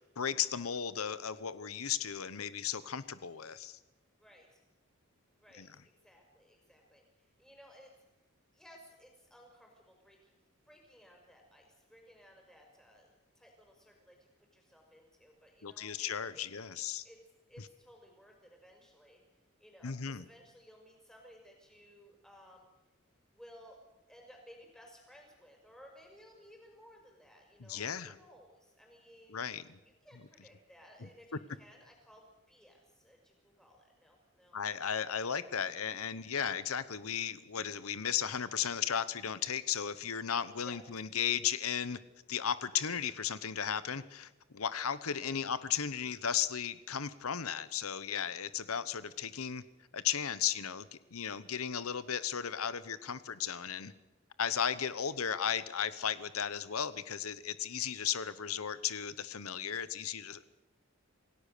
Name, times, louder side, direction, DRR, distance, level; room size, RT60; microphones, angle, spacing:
voice 1, 0.2-3.8 5.6-5.7 15.6-17.0 17.6-17.7 19.8-20.2 27.6-28.2 29.3-29.8 31.0-31.1 34.5-42.0 42.3-49.6 49.9-53.9 54.4-60.4, left 8 dB, 85° left, 15 dB, 0.9 m, -35 dB
voice 2, 4.2-4.6 5.4-7.9 8.5-10.4 10.7-13.1 13.4-16.0 17.0-17.2 17.5-19.2 19.6-22.6 23.3-23.8 24.1-29.4 29.8-34.6 40.6-40.8 45.2-45.4 54.8-55.0, equal, 5° left, 1 dB, 5.5 m, -58 dB
27.5 x 17.5 x 6.7 m, 1.0 s
head